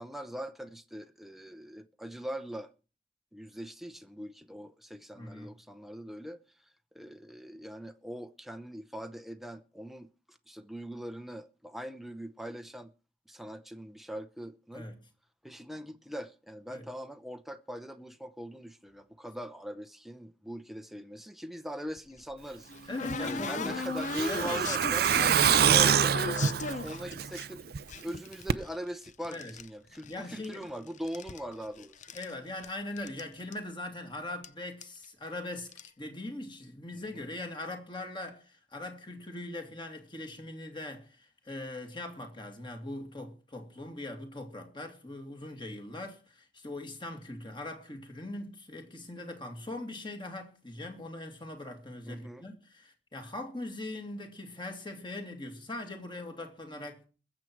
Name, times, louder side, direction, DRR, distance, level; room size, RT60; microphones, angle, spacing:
voice 1, 0.0-2.7 3.3-6.4 6.9-12.9 13.3-14.9 15.4-22.7 23.2-25.1 25.6-27.7 27.9-32.0 37.1-37.3 52.0-52.4, equal, ahead, 0.8 m, -41 dB
voice 2, 5.1-5.5 14.7-15.0 16.7-16.8 22.9-23.8 24.3-24.7 25.2-25.7 29.3-29.5 30.0-30.7 32.1-57.1, left 2 dB, 30° left, 2.6 m, -41 dB
sound 1, 22.0-27.4 27.9-29.7 29.9-30.7 31.0-32.3 32.6-32.7 33.0-33.2 33.5-33.6 34.4-34.5 34.8-35.0 35.6-35.9, left 4 dB, 45° left, 0.7 m, -37 dB
Truck, 23.1-27.8 28.1-28.2 28.5-28.6, right 8 dB, 65° right, 0.5 m, -26 dB
21.0 x 7.5 x 4.6 m
head